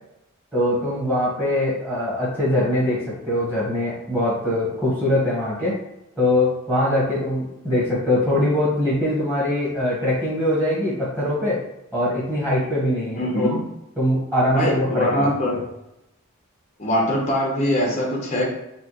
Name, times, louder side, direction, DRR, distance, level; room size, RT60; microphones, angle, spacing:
voice 1, 0.5-5.8 6.2-11.6 11.9-13.6 14.0-15.6, left 1 dB, 10° right, -8 dB, 1.2 m, -22 dB
voice 2, 13.2-13.6 14.5-15.6 16.8-18.5, equal, 30° left, -2 dB, 0.6 m, -22 dB
4.2 x 2.3 x 3.0 m, 0.89 s
head